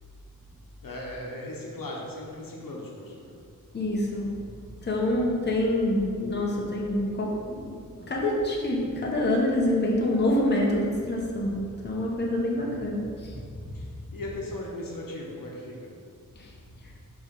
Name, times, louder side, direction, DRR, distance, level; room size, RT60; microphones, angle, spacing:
voice 1, 0.8-3.4 13.7-16.0, left 1 dB, 75° left, -2 dB, 1.0 m, -38 dB
voice 2, 3.7-4.4 4.8-13.6 14.1-14.2 16.4-16.5, left 1 dB, 30° left, -2 dB, 0.8 m, -27 dB
6.4 x 3.0 x 5.2 m, 2.2 s
wide cardioid pair, 115°, 34 cm